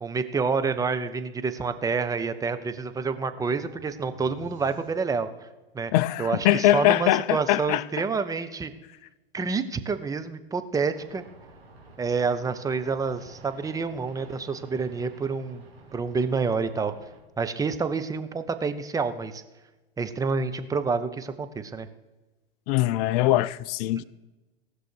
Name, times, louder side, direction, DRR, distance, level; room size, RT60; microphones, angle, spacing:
voice 1, 0.0-5.5 5.7-5.9 6.2-8.7 9.3-11.2 12.0-15.6 15.9-16.9 17.4-19.4 20.0-21.9 24.0-24.1, right 4 dB, 10° right, 0.7 m, -28 dB
sound 1, 2.6-6.0, right 8 dB, 40° right, 1.9 m, -53 dB
voice 2, 5.9-7.8 22.7-24.0, left 15 dB, 40° left, 0.5 m, -22 dB
sound 2, 10.9-17.2, right 2 dB, 85° right, 3.3 m, -51 dB
18.0 x 6.3 x 4.6 m
figure-of-eight pair, 95°, 30 cm